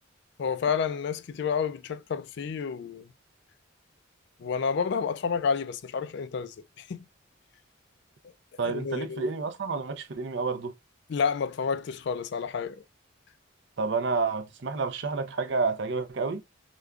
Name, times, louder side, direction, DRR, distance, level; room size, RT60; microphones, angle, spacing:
voice 1, 0.4-3.1 4.4-7.0 8.6-9.3 11.1-12.8, left 6 dB, 55° left, 0.3 m, -30 dB
voice 2, 8.6-10.7 13.8-16.4, right 4 dB, 60° right, 0.5 m, -29 dB
5.0 x 2.2 x 2.3 m
head